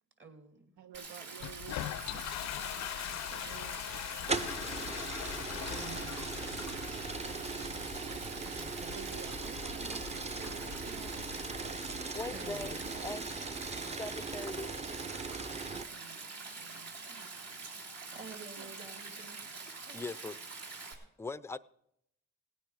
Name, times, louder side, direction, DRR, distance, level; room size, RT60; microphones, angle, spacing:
voice 1, 0.2-0.8 5.6-6.6 8.4-9.2 12.3-13.2 18.1-20.0, right 3 dB, 40° right, 2.6 m, -51 dB
voice 2, 0.8-2.7 3.1-4.8 8.9-11.4 15.5-16.3 16.6-17.4 18.1-18.7, right 10 dB, 75° right, 0.7 m, -52 dB
Stream, 0.9-20.9, right 4 dB, 55° right, 2.6 m, -45 dB
Toilet flush, 1.4-13.0, left 13 dB, 65° left, 0.5 m, -43 dB
sound 1, 4.3-15.8, right 4 dB, 20° right, 0.8 m, -39 dB
voice 3, 12.1-12.8 13.0-13.2 14.0-14.7 19.9-20.3 21.2-21.6, left 3 dB, 10° left, 0.4 m, -40 dB
17.5 x 9.2 x 4.8 m
cardioid pair, 90°, 30 cm